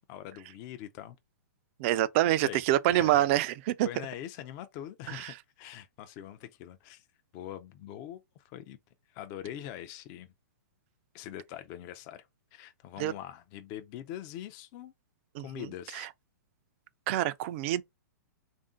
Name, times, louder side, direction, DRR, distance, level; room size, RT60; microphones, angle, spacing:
voice 1, 0.1-1.2 2.2-2.6 2.9-3.3 3.8-7.1 7.3-8.8 9.1-10.3 11.1-14.9 15.4-16.1, left 11 dB, 35° left, 0.4 m, -43 dB
voice 2, 1.8-3.9 5.1-5.3 13.0-13.1 15.4-15.7 15.9-16.1 17.1-17.8, right 14 dB, 40° right, 0.3 m, -26 dB
3.5 x 2.6 x 3.6 m
hypercardioid pair, 130°, 10 cm